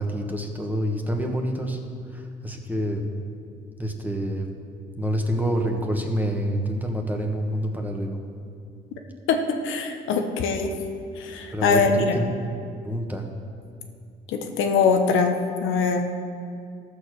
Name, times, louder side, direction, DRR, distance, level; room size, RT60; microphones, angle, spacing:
voice 1, 0.0-1.8 2.1-3.0 3.8-4.5 5.0-8.2 11.5-12.3 12.8-13.3, equal, 10° right, 2 dB, 1.5 m, -27 dB
voice 2, 9.6-10.7 11.2-12.2 14.3-16.1, left 5 dB, 90° left, 4 dB, 1.1 m, -22 dB
14.5 x 6.7 x 6.5 m, 2.4 s
cardioid pair, 90°, 20 cm